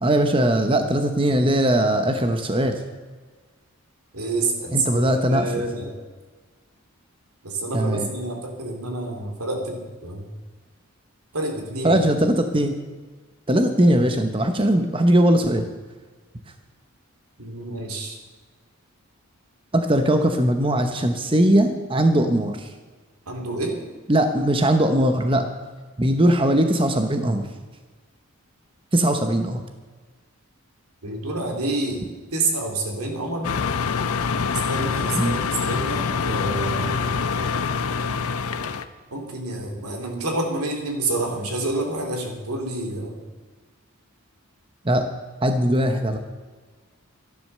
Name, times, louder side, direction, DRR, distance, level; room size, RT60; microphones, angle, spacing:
voice 1, 0.0-2.8 4.7-5.5 7.7-8.1 11.8-12.7 13.5-15.6 19.7-22.7 24.1-25.5 26.0-27.5 28.9-29.6 35.1-35.4 44.8-45.0 45.4-46.2, right 1 dB, 25° right, 6 dB, 0.9 m, -20 dB
voice 2, 4.1-5.9 7.4-10.3 11.3-12.0 17.4-18.2 23.3-23.8 31.0-32.0 32.3-33.5 34.7-37.1 39.1-43.2, right 2 dB, 85° right, 2 dB, 2.9 m, -28 dB
sound 1, 33.4-38.8, left 5 dB, 80° left, 0.8 m, -25 dB
13.0 x 10.5 x 6.7 m, 1.4 s
head